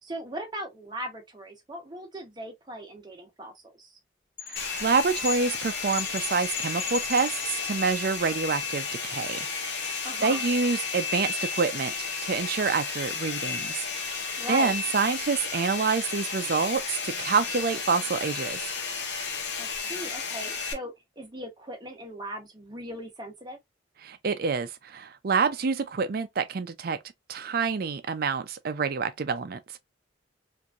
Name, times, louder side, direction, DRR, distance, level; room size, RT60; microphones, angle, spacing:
voice 1, 0.0-4.0 10.0-10.4 14.4-14.8 19.6-23.6, equal, 25° right, 0.9 m, -39 dB
sound 1, 4.4-8.0, left 7 dB, 30° left, 1.5 m, -38 dB
voice 2, 4.5-14.2 14.5-18.6 24.0-27.0 27.3-29.6, right 5 dB, 55° right, 0.4 m, -27 dB
Domestic sounds home sounds, 4.6-20.7, left 5 dB, 65° left, 0.8 m, -33 dB
2.9 x 2.6 x 2.3 m
head